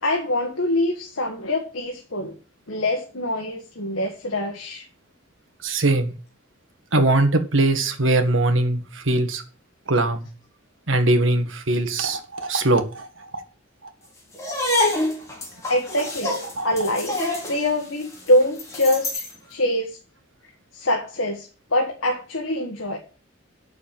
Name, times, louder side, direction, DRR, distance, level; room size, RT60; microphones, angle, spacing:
voice 1, 0.0-2.3 2.7-4.8 15.7-16.3 16.6-17.2 17.5-20.0 20.7-23.0, left 1 dB, 85° left, 2 dB, 1.6 m, -24 dB
voice 2, 5.6-6.1 6.9-9.4 9.9-10.3 10.9-13.4 16.5-16.7, right 2 dB, 75° right, 8 dB, 1.8 m, -21 dB
sound 1, 14.3-19.4, left 1 dB, 15° left, 3.7 m, -27 dB
8.2 x 6.7 x 7.7 m, 0.36 s
head